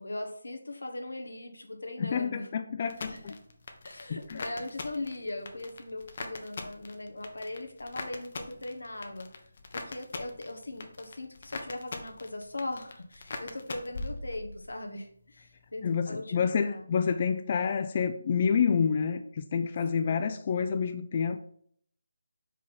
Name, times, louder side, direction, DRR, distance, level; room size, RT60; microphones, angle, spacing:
voice 1, 0.0-2.4 3.1-3.3 3.8-9.3 9.7-16.8 20.1-20.2, left 2 dB, 90° left, 5 dB, 1.4 m, -39 dB
voice 2, 2.0-3.3 4.1-4.4 15.8-21.4, left 6 dB, 35° left, 8 dB, 0.4 m, -28 dB
sound 1, 2.9-14.8 15.1-15.7, left 3 dB, 50° left, 1.0 m, -42 dB
5.1 x 4.4 x 5.6 m, 0.64 s
figure-of-eight pair, 165°, 0 cm